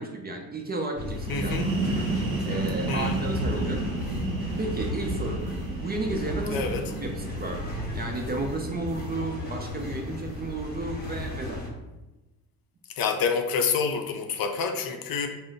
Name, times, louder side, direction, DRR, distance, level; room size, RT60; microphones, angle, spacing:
voice 1, 0.0-1.7 2.1-3.8 4.6-5.4 5.8-11.6, right 2 dB, 25° right, 3 dB, 0.5 m, -33 dB
sound 1, 1.0-11.7, left 1 dB, 20° left, 1.1 m, -34 dB
sound 2, 1.1-8.7, right 3 dB, 50° right, 0.8 m, -32 dB
voice 2, 1.3-1.7 2.9-3.3 6.5-6.8 13.0-15.3, left 5 dB, 55° left, 5 dB, 0.6 m, -27 dB
3.8 x 2.0 x 3.9 m, 1.1 s
supercardioid pair, 75°, 43 cm